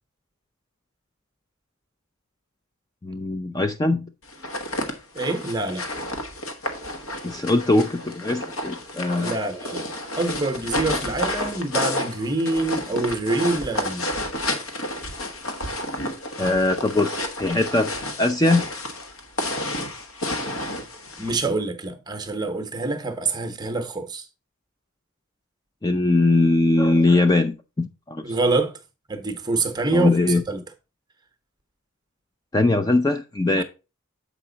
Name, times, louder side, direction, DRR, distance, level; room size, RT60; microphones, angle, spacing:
voice 1, 3.0-4.0 7.2-9.4 16.4-18.7 25.8-28.3 29.9-30.4 32.5-33.6, left 2 dB, 15° left, 0.4 m, -21 dB
sound 1, 4.3-21.4, left 1 dB, 70° left, 1.3 m, -30 dB
voice 2, 5.1-5.9 9.2-9.9 10.2-14.1 21.2-24.3 28.2-28.7 29.1-30.6 33.6-33.7, right 2 dB, 20° right, 0.8 m, -26 dB
7.5 x 5.0 x 3.9 m
head